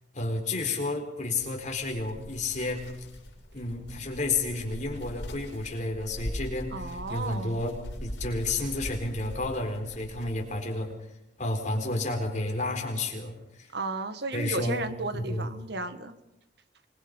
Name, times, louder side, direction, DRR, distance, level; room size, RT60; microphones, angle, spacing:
voice 1, 0.1-2.8 3.5-7.7 8.0-10.9 11.4-13.7 14.3-14.8 15.1-15.5, left 2 dB, 40° left, 2 dB, 4.3 m, -31 dB
sound 1, 1.5-10.7, equal, 70° left, 6.1 m, -41 dB
voice 2, 6.7-7.6 13.7-16.1, right 3 dB, 65° right, 9 dB, 1.6 m, -34 dB
25.5 x 21.5 x 5.4 m, 0.87 s
head